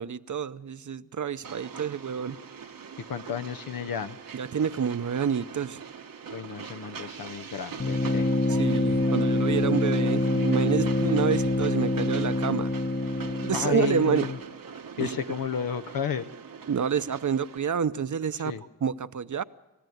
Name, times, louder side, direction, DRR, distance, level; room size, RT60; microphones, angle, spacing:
voice 1, 0.0-2.4 4.3-5.8 8.5-12.7 13.4-14.3 15.0-15.1 16.7-18.5 18.8-19.4, right 7 dB, 60° right, 0.8 m, -28 dB
Train, 1.4-17.6, right 6 dB, 75° right, 1.1 m, -42 dB
voice 2, 3.0-4.2 6.3-8.3 13.2-14.4 15.0-16.3 18.4-18.6, left 8 dB, 80° left, 0.7 m, -32 dB
sound 1, 7.8-14.4, left 2 dB, 30° left, 0.8 m, -26 dB
29.0 x 15.5 x 9.3 m
wide cardioid pair, 90°, 34 cm